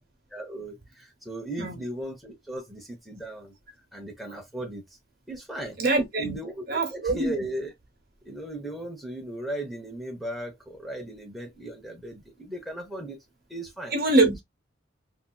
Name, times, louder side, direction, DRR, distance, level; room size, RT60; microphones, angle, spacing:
voice 1, 0.3-3.5 3.9-4.8 5.3-5.8 6.2-7.7 8.2-13.2 13.5-14.0, right 1 dB, ahead, 0.7 m, -37 dB
voice 2, 5.8-6.4 6.7-7.5 13.9-14.4, right 2 dB, 50° right, 1.0 m, -24 dB
3.3 x 2.7 x 2.2 m
head